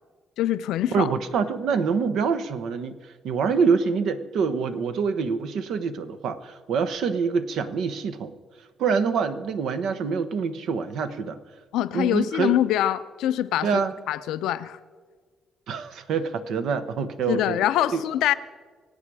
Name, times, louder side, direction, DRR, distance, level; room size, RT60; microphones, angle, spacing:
voice 1, 0.4-1.1 11.7-14.8 17.3-18.3, left 12 dB, 90° left, 12 dB, 0.5 m, -24 dB
voice 2, 0.9-3.0 3.2-8.3 8.8-11.4 11.9-12.5 13.6-13.9 15.7-17.6 17.9-18.0, right 5 dB, 75° right, 11 dB, 0.9 m, -25 dB
23.5 x 8.5 x 4.8 m, 1.5 s
cardioid pair, 90°, 0 cm